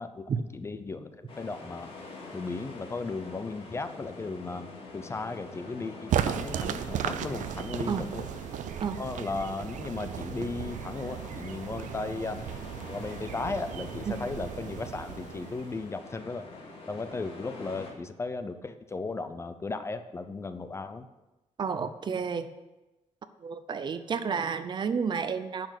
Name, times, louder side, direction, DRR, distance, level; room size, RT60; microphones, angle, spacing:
voice 1, 0.0-1.9 2.3-8.3 9.0-12.4 12.9-16.5 16.9-21.1, left 3 dB, 20° left, 10 dB, 0.5 m, -36 dB
sound 1, 1.3-17.9, left 3 dB, 45° left, 2.4 m, -45 dB
sound 2, 6.1-15.9, right 10 dB, 80° right, 0.6 m, -35 dB
voice 2, 21.6-22.5 23.4-25.7, right 6 dB, 35° right, 12 dB, 0.6 m, -31 dB
10.5 x 6.1 x 8.1 m, 1.0 s
wide cardioid pair, 180°, 13 cm